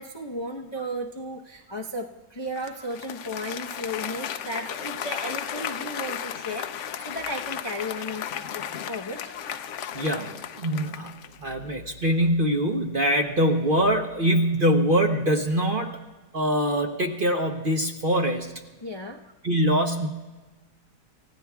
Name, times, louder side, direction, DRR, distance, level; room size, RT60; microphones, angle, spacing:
voice 1, 0.0-9.3 18.8-19.2, equal, 30° left, 0 dB, 0.5 m, -34 dB
Applause, 2.6-11.5, left 9 dB, 70° left, 0.7 m, -35 dB
voice 2, 9.9-10.3 10.6-11.1 11.4-16.0 16.3-18.5 19.4-20.1, equal, 40° right, 2 dB, 0.9 m, -23 dB
29.0 x 15.5 x 2.3 m, 1.2 s
omnidirectional pair, 1.9 m